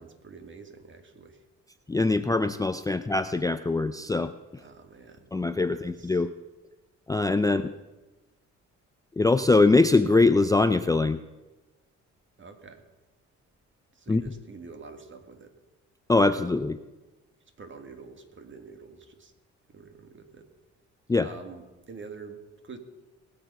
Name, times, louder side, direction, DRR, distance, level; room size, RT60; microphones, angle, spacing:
voice 1, 0.0-1.4 4.6-5.3 5.7-6.2 7.4-7.6 12.4-12.8 13.9-15.6 16.1-16.5 17.6-19.3 19.7-20.5 21.2-22.8, right 4 dB, 40° right, 6 dB, 1.9 m, -47 dB
voice 2, 1.9-4.3 5.3-6.3 7.1-7.6 9.2-11.2 14.1-14.2 16.1-16.8 21.1-21.3, left 3 dB, 10° left, 10 dB, 0.4 m, -22 dB
20.5 x 6.9 x 5.5 m, 1.1 s
cardioid pair, 90°, 30 cm